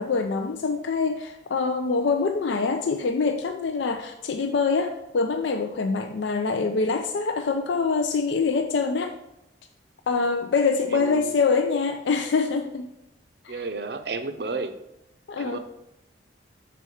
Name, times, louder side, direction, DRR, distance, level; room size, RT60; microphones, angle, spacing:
voice 1, 0.0-9.2 10.1-12.9 13.4-13.6 15.3-15.6, left 4 dB, 80° left, 6 dB, 0.4 m, -25 dB
voice 2, 10.9-11.3 13.5-14.7 15.4-15.6, right 3 dB, 60° right, 9 dB, 0.6 m, -32 dB
6.9 x 4.3 x 4.8 m, 0.86 s
head